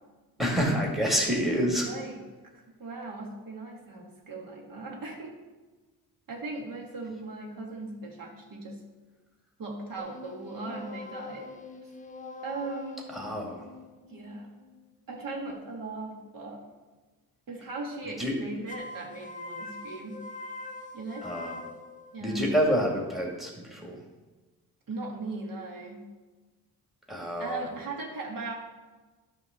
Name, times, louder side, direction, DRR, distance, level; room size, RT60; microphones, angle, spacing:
voice 1, 0.4-1.9 13.1-13.7 18.2-18.3 21.2-21.6 22.2-24.0 27.1-27.7, equal, ahead, -1 dB, 1.9 m, -28 dB
voice 2, 1.8-2.2 2.8-5.3 6.3-8.8 9.6-11.5 12.4-13.0 14.1-14.5 15.1-16.6 17.5-20.2 20.9-21.3 22.1-22.5 24.9-26.1 27.4-28.5, right 3 dB, 60° right, 0 dB, 1.8 m, -38 dB
sound 1, 10.0-15.3 18.7-22.6, left 3 dB, 20° left, 0.8 m, -44 dB
11.0 x 3.8 x 6.5 m, 1.3 s
cardioid pair, 100°, 38 cm